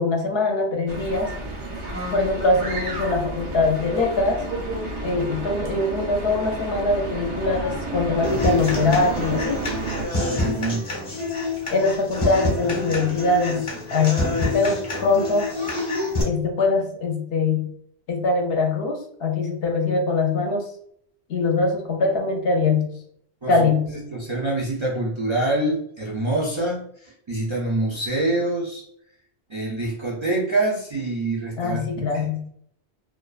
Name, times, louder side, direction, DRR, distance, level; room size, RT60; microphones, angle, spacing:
voice 1, 0.0-1.3 2.1-4.4 5.0-9.7 11.7-13.6 13.9-15.5 16.2-17.7 18.1-20.7 21.3-22.9 23.5-23.9 31.6-32.4, left 3 dB, 65° left, 2 dB, 0.7 m, -22 dB
sound 1, 0.9-10.1, right 2 dB, 90° right, 1.0 m, -31 dB
Human voice / Acoustic guitar, 8.2-16.2, left 2 dB, 30° left, 0.9 m, -27 dB
voice 2, 10.2-10.9 23.4-28.9 29.5-32.5, right 2 dB, 50° right, -4 dB, 0.3 m, -26 dB
2.4 x 2.2 x 2.3 m, 0.67 s
omnidirectional pair, 1.1 m